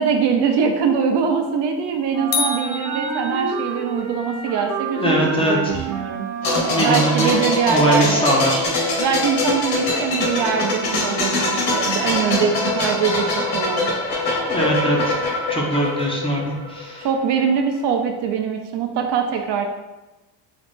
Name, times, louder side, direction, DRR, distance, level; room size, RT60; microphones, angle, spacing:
voice 1, 0.0-6.3 6.6-8.3 8.9-13.9 17.0-19.7, right 6 dB, 55° right, 4 dB, 0.6 m, -22 dB
Wind instrument woodwind instrument, 2.1-7.2, right 4 dB, 35° right, 0.9 m, -29 dB
sound 1, 2.3-3.9, left 5 dB, 80° left, 0.7 m, -27 dB
voice 2, 5.0-5.8 6.7-7.3 7.7-8.6 14.5-15.2 15.5-17.1, right 1 dB, 10° left, -3 dB, 0.6 m, -21 dB
sound 2, 6.4-17.1 17.3-17.5, left 2 dB, 50° left, 1.3 m, -23 dB
3.9 x 2.5 x 3.5 m, 1.1 s
cardioid pair, 115°, 50 cm